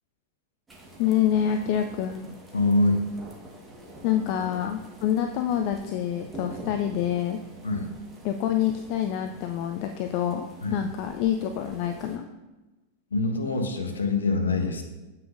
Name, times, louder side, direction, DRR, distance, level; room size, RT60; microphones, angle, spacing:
sound 1, 0.7-12.2, right 1 dB, 15° right, 1.3 m, -46 dB
voice 1, 1.0-2.3 4.0-7.4 8.2-12.3, left 10 dB, 45° left, 6 dB, 0.3 m, -27 dB
voice 2, 2.5-3.0 7.6-7.9 10.6-10.8 13.1-14.8, left 2 dB, 75° left, 5 dB, 0.8 m, -24 dB
7.5 x 5.7 x 2.5 m, 1.1 s
figure-of-eight pair, 90°, 0 cm